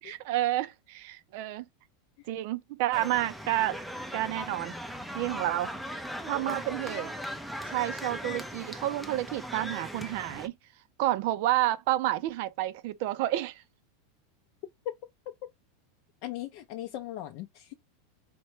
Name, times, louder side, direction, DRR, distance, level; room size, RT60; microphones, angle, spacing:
voice 1, 0.0-1.7 2.3-3.8 4.1-4.8 5.1-5.7 6.3-7.1 7.6-10.5 11.0-13.6, right 14 dB, 55° right, 0.5 m, -30 dB
sound 1, 2.9-10.5, equal, ahead, 0.5 m, -39 dB
voice 2, 16.2-17.7, left 14 dB, 50° left, 0.5 m, -39 dB
4.4 x 2.2 x 4.4 m
supercardioid pair, 150°, 0 cm